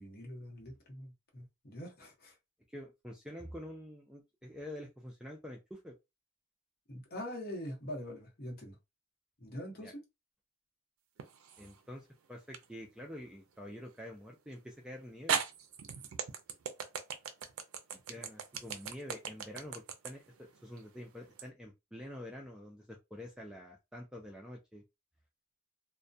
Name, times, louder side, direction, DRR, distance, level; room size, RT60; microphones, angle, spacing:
voice 1, 0.0-2.3 6.9-8.8 9.4-10.0 18.2-18.3, equal, 50° left, 0.8 m, -44 dB
voice 2, 2.7-5.9 9.7-9.9 11.6-15.4 17.9-20.2 20.6-24.8, left 1 dB, 5° right, 0.3 m, -47 dB
sound 1, 11.2-11.8 12.5-12.6 14.5-14.6 15.3-21.5, right 7 dB, 90° right, 0.4 m, -38 dB
2.2 x 2.1 x 2.6 m
head